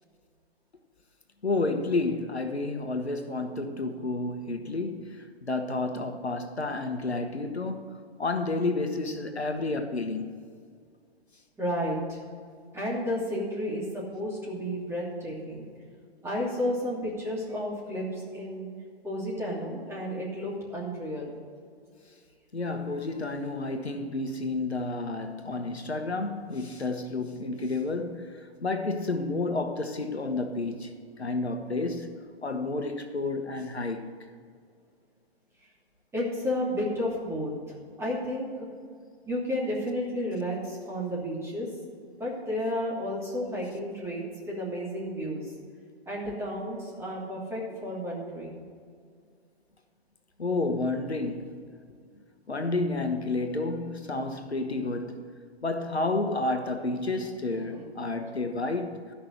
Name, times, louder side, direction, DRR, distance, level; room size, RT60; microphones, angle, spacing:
voice 1, 1.4-10.4 22.5-32.1 32.4-34.1 50.4-51.6 52.5-55.2 55.6-59.0, left 3 dB, 90° left, 1.2 m, -30 dB
voice 2, 11.6-12.2 12.7-15.7 16.2-18.0 18.3-18.7 19.0-21.3 36.1-37.5 38.0-38.5 39.3-41.7 42.2-45.4 46.1-48.6 57.7-57.8, equal, 10° right, 2.8 m, -32 dB
13.0 x 5.8 x 7.7 m
figure-of-eight pair, 120°, 31 cm